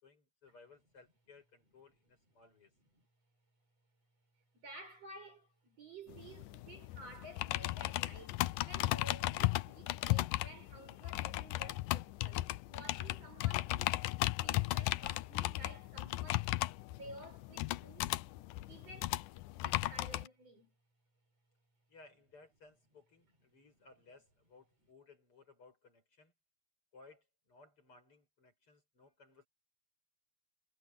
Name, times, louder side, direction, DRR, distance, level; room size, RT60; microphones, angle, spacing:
voice 1, 0.0-2.7 21.9-26.3 26.9-29.5, left 3 dB, 35° left, 6.9 m, -61 dB
voice 2, 4.5-14.0 14.4-16.5 16.9-18.1 18.7-19.3 19.6-20.7, right 2 dB, 40° right, 7.0 m, -54 dB
sound 1, 6.1-20.3, left 18 dB, 85° left, 1.8 m, -36 dB
omnidirectional pair, 4.5 m